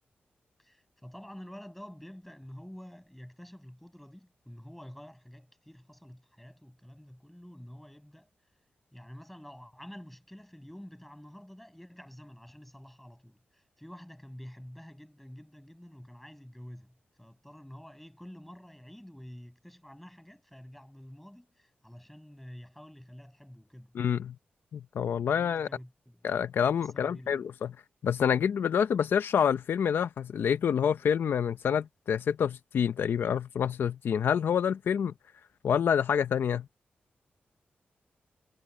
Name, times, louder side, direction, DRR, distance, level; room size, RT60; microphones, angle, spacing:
voice 1, 0.6-8.3 8.9-23.9 25.3-26.2 26.8-27.4, equal, 5° left, 7.1 m, -49 dB
voice 2, 23.9-24.3 24.7-25.7 26.2-27.7 28.0-35.1 35.6-36.7, left 8 dB, 85° left, 0.7 m, -27 dB
wide cardioid pair, 125°, 4 cm